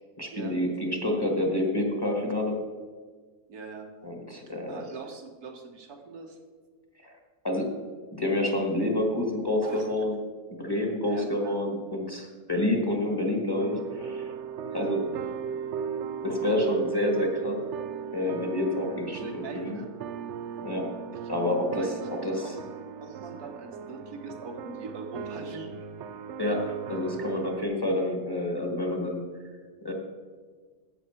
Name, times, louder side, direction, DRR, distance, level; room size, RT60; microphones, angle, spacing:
voice 1, 0.2-2.5 4.0-4.8 7.0-7.1 7.4-7.8 8.1-10.2 10.6-14.3 14.7-15.1 16.2-17.6 18.1-19.8 20.6-20.9 21.3-21.9 22.2-22.5 26.4-29.2 29.8-29.9, left 1 dB, 15° left, 1 dB, 1.3 m, -28 dB
voice 2, 3.5-3.9 4.5-6.4 9.6-9.9 11.1-11.6 14.7-14.9 19.1-19.9 21.2-21.3 21.8-22.1 22.4-22.5 23.0-25.7, right 4 dB, 85° right, 3 dB, 1.8 m, -42 dB
sound 1, 13.6-27.6, right 7 dB, 70° right, 0.7 m, -36 dB
11.5 x 8.1 x 4.5 m, 1.5 s
omnidirectional pair, 1.6 m